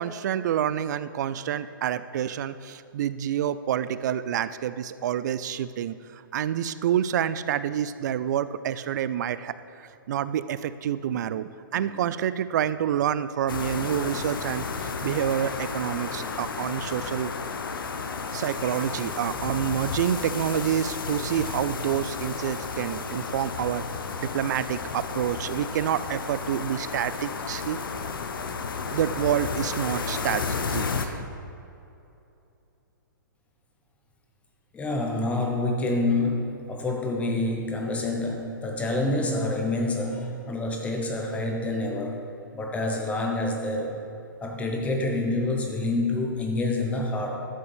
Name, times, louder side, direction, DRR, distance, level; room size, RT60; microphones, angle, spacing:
voice 1, 0.0-9.5 10.1-17.3 18.3-23.8 24.2-27.8 28.9-31.3, right 10 dB, 55° right, 15 dB, 0.4 m, -28 dB
sound 1, 13.5-31.1, left 5 dB, 75° left, 0.8 m, -32 dB
voice 2, 34.7-42.2 42.5-44.0 44.4-47.4, left 2 dB, 10° left, 1 dB, 1.0 m, -27 dB
12.0 x 6.9 x 3.4 m, 2.7 s
hypercardioid pair, 135°, 12 cm